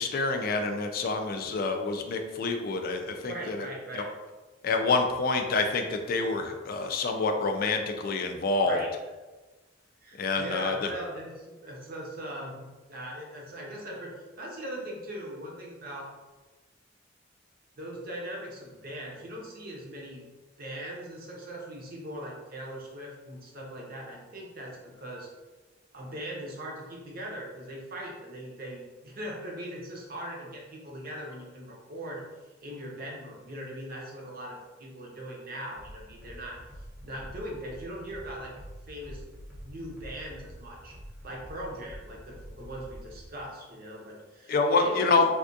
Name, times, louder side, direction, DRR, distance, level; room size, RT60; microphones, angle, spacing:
voice 1, 0.0-3.7 3.9-4.0 4.6-8.8 10.2-10.9 44.5-45.3, left 3 dB, 50° left, 5 dB, 0.3 m, -27 dB
voice 2, 3.3-4.1 8.6-8.9 10.0-16.1 17.8-20.3 20.6-25.3 25.9-32.3 32.6-36.6 37.0-38.5 38.9-39.2 39.6-40.9 41.2-45.2, right 1 dB, 50° right, -2 dB, 0.7 m, -40 dB
sound 1, 35.7-43.3, equal, 5° right, 0.6 m, -46 dB
3.4 x 2.3 x 2.6 m, 1.2 s
head